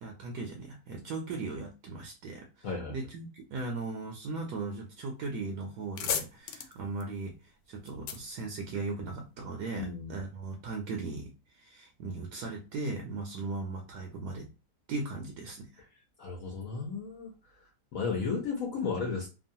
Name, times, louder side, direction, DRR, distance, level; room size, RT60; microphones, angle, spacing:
voice 1, 0.0-14.5 14.9-15.8, right 3 dB, 75° right, 2 dB, 1.1 m, -38 dB
voice 2, 2.6-2.9 9.7-10.2 16.2-17.3 17.9-19.3, left 5 dB, 60° left, -2 dB, 1.0 m, -34 dB
sound 1, 5.2-5.4 5.7-9.3, left 8 dB, 85° left, 1.2 m, -38 dB
3.0 x 2.3 x 2.6 m, 0.31 s
omnidirectional pair, 1.8 m